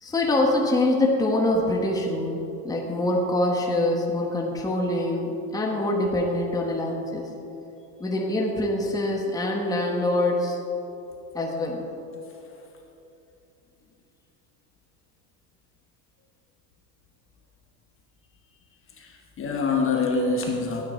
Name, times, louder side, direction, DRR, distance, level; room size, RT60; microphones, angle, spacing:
voice 1, 0.0-7.3 8.0-10.6 11.3-11.9, left 1 dB, 10° left, 0 dB, 1.2 m, -24 dB
voice 2, 18.9-20.8, left 4 dB, 30° left, 1 dB, 1.2 m, -26 dB
13.0 x 9.2 x 4.5 m, 2.9 s
supercardioid pair, 130°, 45 cm